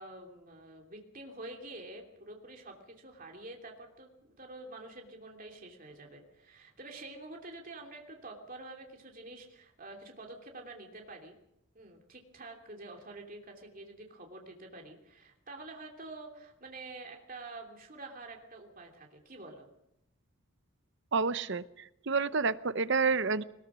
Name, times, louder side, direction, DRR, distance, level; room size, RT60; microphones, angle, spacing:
voice 1, 0.0-11.4 11.7-19.7, right 2 dB, 40° right, 1 dB, 3.0 m, -47 dB
voice 2, 21.1-23.4, right 4 dB, 55° right, 14 dB, 0.8 m, -29 dB
21.5 x 20.5 x 6.3 m, 0.82 s
head